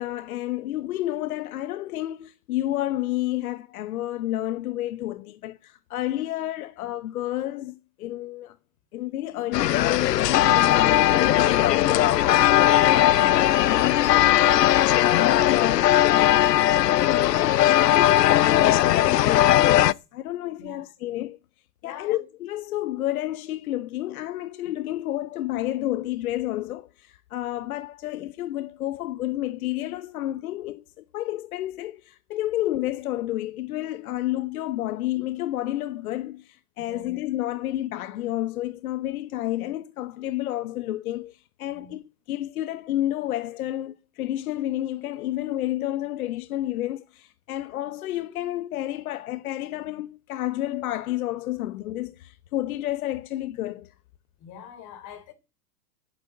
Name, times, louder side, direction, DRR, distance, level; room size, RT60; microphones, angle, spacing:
voice 1, 0.0-8.6 8.9-21.4 21.8-53.9, left 14 dB, 60° left, 1.0 m, -30 dB
sound 1, 9.5-19.9, left 13 dB, 80° left, 0.7 m, -19 dB
voice 2, 21.8-22.2 36.8-37.1 41.7-41.9 54.4-55.3, left 6 dB, 40° left, 3.8 m, -44 dB
11.0 x 9.3 x 8.7 m
hypercardioid pair, 110°, 48 cm